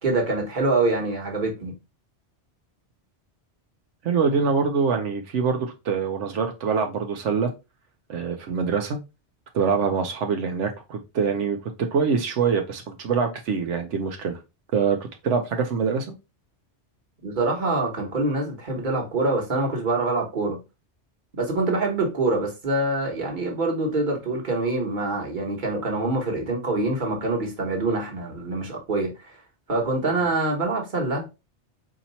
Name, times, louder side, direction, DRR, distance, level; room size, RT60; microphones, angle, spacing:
voice 1, 0.0-1.7 17.2-20.6 21.4-29.3 29.7-31.4, right 2 dB, 45° right, 1.4 m, -25 dB
voice 2, 4.0-7.5 8.1-9.0 9.5-14.4 14.7-16.1, right 5 dB, 85° right, 1.0 m, -24 dB
4.3 x 2.9 x 4.1 m
omnidirectional pair, 1.2 m